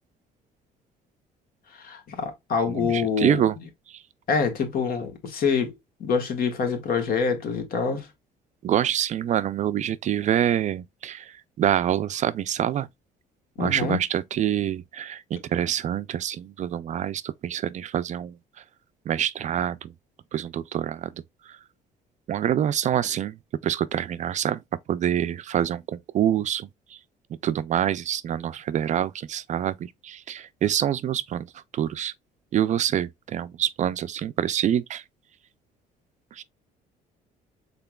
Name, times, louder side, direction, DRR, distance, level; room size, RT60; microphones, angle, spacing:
voice 1, 1.7-3.6 4.3-5.7 6.0-8.1 13.6-14.0, left 5 dB, 60° left, 1.7 m, -26 dB
voice 2, 2.7-3.5 3.9-4.0 8.6-12.9 13.6-18.4 19.1-19.9 20.3-21.1 21.5-21.6 22.3-23.4 23.6-24.6 24.9-27.0 27.4-31.5 31.7-32.1 32.5-35.0 36.3-36.4, right 10 dB, 45° right, 0.4 m, -26 dB
5.7 x 3.8 x 2.3 m
cardioid pair, 110°, 17 cm